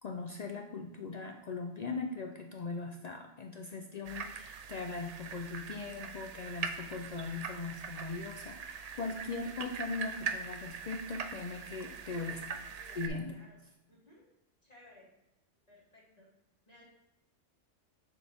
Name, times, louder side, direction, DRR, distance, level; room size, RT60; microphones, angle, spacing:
voice 1, 0.0-12.4 12.9-13.4, left 4 dB, 65° left, 3 dB, 0.4 m, -40 dB
sound 1, 4.0-13.1, right 6 dB, 75° right, 0.3 m, -42 dB
voice 2, 11.8-13.0 13.3-13.6 13.9-14.3 14.6-15.1 15.7-16.3 16.7-16.8, left 1 dB, 35° left, -7 dB, 1.9 m, -59 dB
6.7 x 4.1 x 3.4 m, 0.96 s
omnidirectional pair, 1.2 m